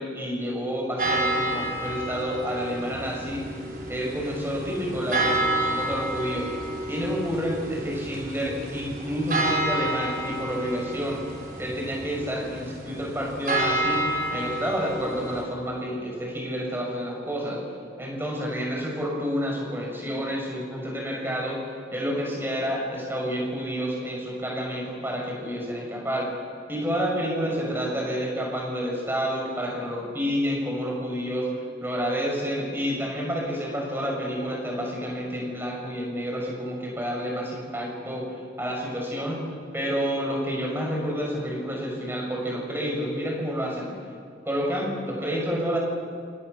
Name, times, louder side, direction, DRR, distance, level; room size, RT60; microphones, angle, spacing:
voice 1, 0.0-3.6 3.9-6.5 6.9-11.2 11.6-17.6 18.0-21.6 21.9-26.3 26.7-39.4 39.7-43.9 44.4-45.8, equal, 10° right, -2 dB, 6.7 m, -29 dB
sound 1, 1.0-15.4, right 1 dB, 50° right, 4.9 m, -30 dB
29.0 x 28.5 x 6.8 m, 2.2 s
head